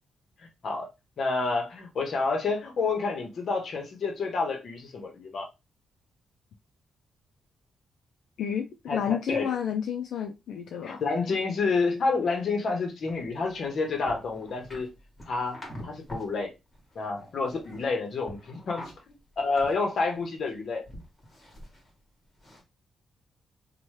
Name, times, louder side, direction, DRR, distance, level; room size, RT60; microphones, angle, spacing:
voice 1, 1.2-5.5 8.9-9.5 10.8-14.9 15.3-15.6 15.8-16.5 16.9-18.9 19.4-20.9, left 4 dB, 55° left, 0.9 m, -29 dB
voice 2, 8.4-11.0, left 8 dB, 80° left, 0.3 m, -30 dB
sound 1, 13.1-16.4 16.7-17.9 18.2-20.5 20.9-21.9 22.4-22.6, left 1 dB, 25° left, 1.3 m, -45 dB
3.0 x 2.2 x 3.1 m
wide cardioid pair, 140°, 0 cm